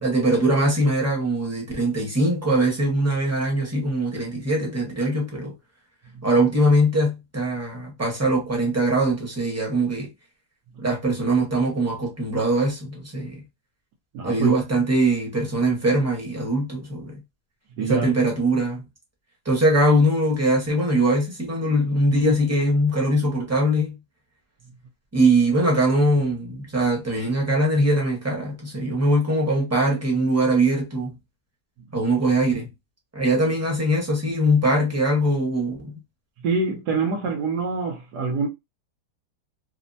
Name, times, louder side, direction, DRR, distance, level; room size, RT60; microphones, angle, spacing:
voice 1, 0.0-5.5 6.2-10.1 10.8-13.4 14.2-17.1 17.8-18.8 19.4-23.9 25.1-31.1 31.9-32.7 33.1-35.9, right 1 dB, 10° right, 0.8 m, -22 dB
voice 2, 14.1-14.5 17.8-18.1 36.4-38.5, right 4 dB, 80° right, 1.4 m, -25 dB
3.5 x 2.0 x 2.6 m
omnidirectional pair, 1.8 m